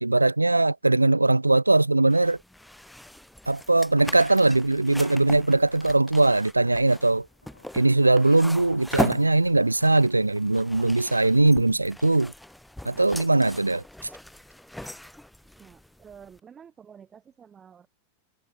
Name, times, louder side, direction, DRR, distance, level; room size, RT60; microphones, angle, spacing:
voice 1, 0.0-2.4 3.5-7.3 7.7-12.3 12.8-13.8, right 2 dB, 85° right, 0.8 m, -20 dB
sound 1, 2.1-16.4, left 1 dB, 5° left, 1.1 m, -38 dB
sound 2, 4.3-10.7, left 2 dB, 80° left, 6.1 m, -55 dB
voice 2, 15.6-17.9, right 7 dB, 20° right, 5.3 m, -49 dB
figure-of-eight pair, 90°, 0 cm